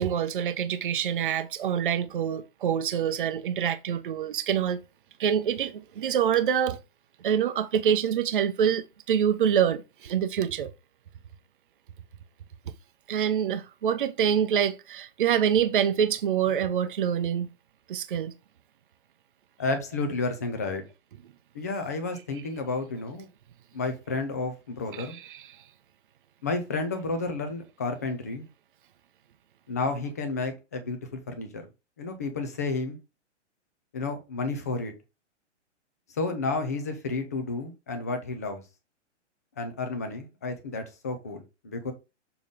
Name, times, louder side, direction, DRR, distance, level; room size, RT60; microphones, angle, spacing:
voice 1, 0.0-4.8 5.2-6.8 7.2-10.7 13.1-17.5 17.9-18.3 24.9-25.6, right 8 dB, 45° right, 0.7 m, -26 dB
voice 2, 19.6-20.8 21.5-23.3 23.7-25.2 26.4-28.5 29.7-31.7 32.0-33.0 33.9-34.9 36.1-38.6 39.6-41.9, left 3 dB, 15° left, 0.5 m, -31 dB
6.9 x 4.0 x 3.6 m
hypercardioid pair, 175°, 36 cm